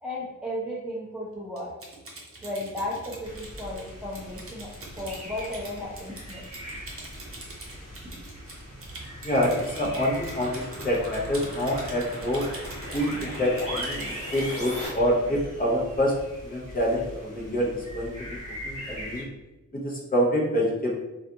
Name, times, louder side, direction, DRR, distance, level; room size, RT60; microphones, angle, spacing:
voice 1, 0.0-1.7 2.4-4.7 5.0-6.4, left 1 dB, 5° right, -7 dB, 0.5 m, -34 dB
Typing, 1.6-14.6, right 2 dB, 45° right, 0.7 m, -44 dB
sound 1, 3.2-19.2, equal, 20° right, 1.1 m, -41 dB
sound 2, 8.4-14.9, left 1 dB, 45° left, 1.3 m, -39 dB
voice 2, 9.2-12.4 12.9-16.1 16.4-18.3 18.6-19.3 19.7-20.9, equal, 30° left, -3 dB, 0.7 m, -26 dB
2.4 x 2.3 x 2.7 m, 1.0 s
wide cardioid pair, 85°, 32 cm